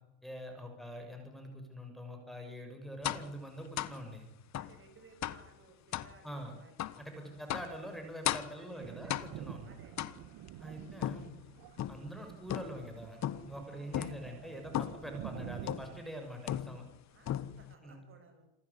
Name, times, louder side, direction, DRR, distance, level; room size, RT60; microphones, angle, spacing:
voice 1, 0.2-4.3 6.2-6.6 7.0-9.8 10.6-11.3 11.9-16.8 17.8-18.0, equal, ahead, 3 dB, 6.5 m, -45 dB
sound 1, 3.0-3.3 3.8-4.0 4.5-4.8 5.2-5.5 5.9-6.1 6.8-7.0 7.5-7.8 8.2-8.6 9.1-9.5 10.0-10.5 11.0-12.1 12.5-12.9 13.2-13.6 13.9-14.2 14.7-15.1 15.7-16.0 16.5-17.0 17.3-17.7, left 12 dB, 40° left, 1.4 m, -36 dB
voice 2, 4.5-6.9 7.2-7.4 8.6-9.1 9.6-9.9 10.7-10.8 13.7-14.1 17.1-18.5, right 4 dB, 30° right, 6 dB, 6.6 m, -60 dB
Thunder, 8.8-16.0, right 14 dB, 55° right, 1.6 m, -49 dB
27.5 x 14.5 x 9.9 m, 0.93 s
cardioid pair, 130°, 43 cm